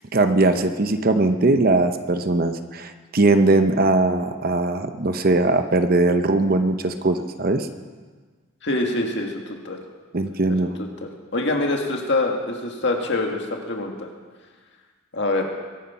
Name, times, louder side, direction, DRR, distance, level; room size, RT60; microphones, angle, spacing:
voice 1, 0.1-7.7 10.1-10.7, right 2 dB, 45° right, 8 dB, 0.8 m, -20 dB
voice 2, 8.6-9.8 10.5-10.7 11.0-14.1 15.1-15.4, left 2 dB, 55° left, 2 dB, 2.0 m, -25 dB
22.5 x 9.6 x 5.7 m, 1.5 s
head